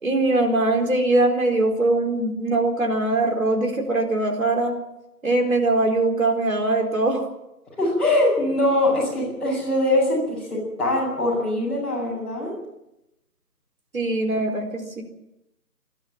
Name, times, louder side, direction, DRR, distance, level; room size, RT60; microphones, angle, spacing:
voice 1, 0.0-4.7 5.2-7.3 13.9-15.0, right 2 dB, 60° right, 3 dB, 4.5 m, -22 dB
voice 2, 7.8-12.5, left 1 dB, ahead, -12 dB, 5.8 m, -22 dB
27.0 x 12.0 x 9.0 m, 0.87 s
figure-of-eight pair, 170°, 48 cm